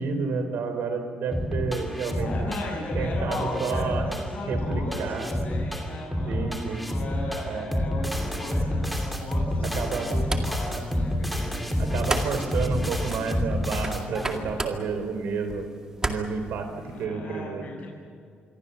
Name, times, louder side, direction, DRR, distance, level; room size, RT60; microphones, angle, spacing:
voice 1, 0.0-2.5 3.0-4.1 4.5-5.3 6.3-6.9 7.5-7.7 9.6-10.1 11.8-15.7 16.0-17.7, right 5 dB, 80° right, 8 dB, 4.2 m, -30 dB
sound 1, 1.3-14.5, equal, ahead, 2.9 m, -29 dB
voice 2, 2.1-12.2 13.9-14.6 16.6-17.9, left 1 dB, 45° left, -1 dB, 7.8 m, -36 dB
sound 2, 9.5-17.0, right 2 dB, 20° right, 2.1 m, -36 dB
27.0 x 22.5 x 7.1 m, 2.3 s
cardioid pair, 155°, 3 cm